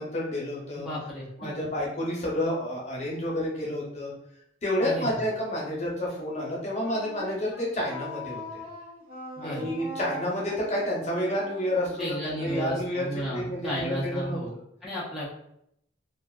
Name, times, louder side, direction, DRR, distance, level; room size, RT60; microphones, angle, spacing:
voice 1, 0.0-0.9 1.4-4.1 4.6-8.6 9.4-14.4, left 1 dB, 35° left, -4 dB, 0.7 m, -30 dB
voice 2, 0.8-1.5 4.8-5.2 9.4-9.7 12.0-14.5 14.8-15.3, equal, ahead, -8 dB, 0.4 m, -33 dB
Wind instrument woodwind instrument, 6.8-13.7, left 1 dB, 35° right, 0.9 m, -43 dB
2.4 x 2.3 x 2.2 m, 0.75 s
head